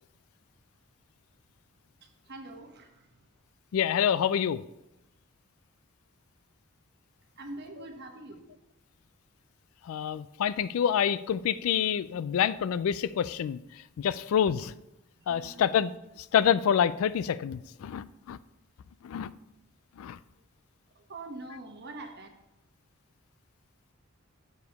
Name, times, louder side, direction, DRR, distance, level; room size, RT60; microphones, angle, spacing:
voice 1, 2.0-3.3 7.4-8.5 15.1-15.7 20.9-22.3, right 2 dB, 55° right, 1.0 m, -44 dB
voice 2, 3.7-4.6 9.8-14.7 15.3-15.9 16.2-18.4 19.0-19.3 20.0-20.2, left 8 dB, 80° left, 0.3 m, -27 dB
7.0 x 4.8 x 5.3 m
head